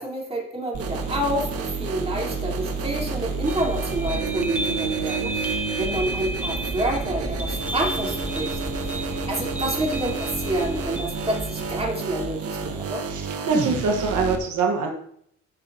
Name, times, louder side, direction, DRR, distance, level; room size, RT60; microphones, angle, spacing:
voice 1, 0.0-13.0, right 1 dB, 20° right, -3 dB, 3.8 m, -28 dB
sound 1, 0.7-14.4, right 4 dB, 50° right, 1.4 m, -30 dB
sound 2, 3.5-11.8, right 1 dB, 5° right, 0.8 m, -33 dB
voice 2, 13.1-14.9, right 4 dB, 75° right, 1 dB, 1.5 m, -24 dB
15.5 x 6.2 x 2.9 m, 0.67 s
cardioid pair, 90°, 30 cm